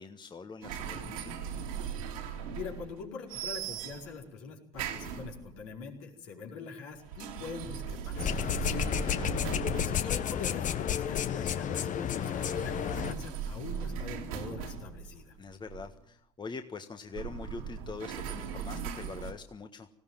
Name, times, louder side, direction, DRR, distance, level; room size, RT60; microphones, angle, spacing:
voice 1, 0.0-1.3 9.0-9.5 15.4-19.9, left 4 dB, 25° left, 7 dB, 1.5 m, -44 dB
sound 1, 0.6-3.0 3.3-4.2 4.7-5.7 6.9-10.6 12.0-16.0 17.1-19.3, right 7 dB, 80° right, 2.9 m, -39 dB
voice 2, 2.2-8.9 9.8-15.4, left 5 dB, 70° left, 0 dB, 4.8 m, -43 dB
sound 2, 8.2-13.1, left 9 dB, 50° left, 1.2 m, -31 dB
19.5 x 16.0 x 9.1 m, 0.69 s
hypercardioid pair, 65°, 17 cm